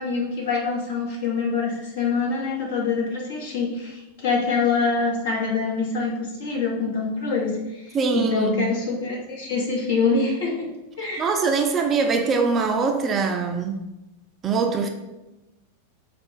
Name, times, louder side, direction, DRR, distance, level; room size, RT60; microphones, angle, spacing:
voice 1, 0.0-10.7 11.0-11.3, left 4 dB, 55° left, -2 dB, 1.2 m, -25 dB
voice 2, 7.9-8.7 11.0-13.8 14.4-14.9, right 4 dB, 25° right, 4 dB, 0.4 m, -23 dB
4.4 x 2.3 x 4.5 m, 0.99 s
figure-of-eight pair, 90°, 0 cm